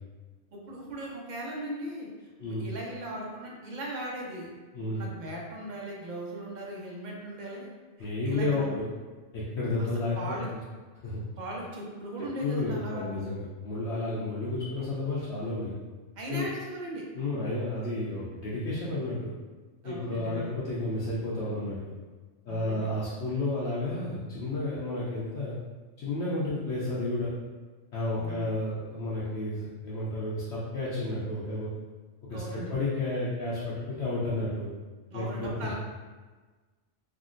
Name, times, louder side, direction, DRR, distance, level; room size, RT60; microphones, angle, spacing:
voice 1, 0.5-7.7 8.0-8.7 9.8-9.9 10.1-10.5 11.4-13.2 16.2-17.0 19.8-20.5 22.5-22.9 28.2-28.5 32.3-32.7 35.1-35.7, right 1 dB, 55° right, -2 dB, 0.5 m, -38 dB
voice 2, 8.0-8.8 9.3-10.6 11.0-11.2 12.4-15.7 16.3-16.5 17.1-19.3 19.8-21.9 22.5-25.6 26.0-27.3 27.9-31.7 32.3-34.7 35.1-35.7, left 2 dB, 70° left, -8 dB, 0.8 m, -31 dB
3.5 x 2.1 x 2.4 m, 1.3 s
omnidirectional pair, 1.3 m